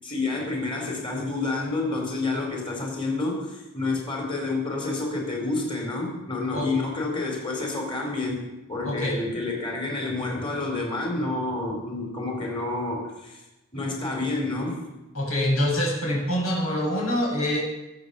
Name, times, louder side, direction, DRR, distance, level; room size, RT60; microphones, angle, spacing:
voice 1, 0.0-13.4 13.7-14.8, left 2 dB, 25° left, 1 dB, 4.6 m, -29 dB
voice 2, 8.8-9.1 15.1-17.6, left 1 dB, 80° left, -1 dB, 7.4 m, -25 dB
22.5 x 8.3 x 7.3 m, 0.99 s
head